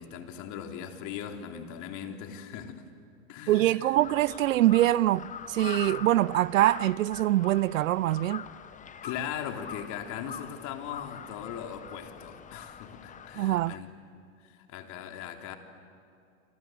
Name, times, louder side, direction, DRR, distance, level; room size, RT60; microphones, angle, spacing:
voice 1, 0.0-2.8 3.3-3.9 9.0-13.9 14.4-15.6, left 8 dB, 45° left, 3.4 m, -39 dB
voice 2, 3.5-8.4 13.4-13.7, right 14 dB, 70° right, 0.6 m, -24 dB
Crow, 4.0-13.8, left 8 dB, 20° left, 1.0 m, -43 dB
28.0 x 26.0 x 7.9 m
hypercardioid pair, 105°, 41 cm